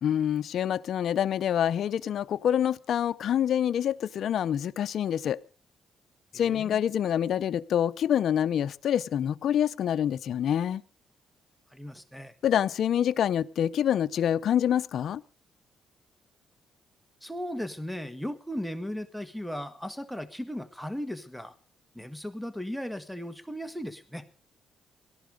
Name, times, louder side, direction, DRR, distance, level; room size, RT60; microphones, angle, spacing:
voice 1, 0.0-5.4 6.3-10.8 12.4-15.2, left 9 dB, 65° left, 13 dB, 0.7 m, -26 dB
voice 2, 6.3-6.8 11.7-12.3 17.2-21.5 21.9-24.2, equal, ahead, 8 dB, 1.4 m, -36 dB
18.0 x 12.5 x 5.2 m, 0.40 s
cardioid pair, 90°, 0 cm